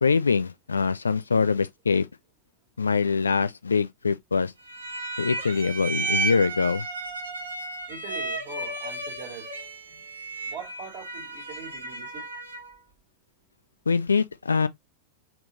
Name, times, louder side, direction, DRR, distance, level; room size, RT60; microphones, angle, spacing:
voice 1, 0.0-2.1 2.8-4.5 5.2-6.9 13.9-14.7, left 5 dB, 75° left, 0.4 m, -24 dB
sound 1, 4.6-12.8, right 3 dB, 75° right, 0.8 m, -33 dB
voice 2, 7.9-10.0 10.4-12.3, right 7 dB, 45° right, 1.8 m, -42 dB
3.8 x 2.3 x 3.8 m
figure-of-eight pair, 90°, 0 cm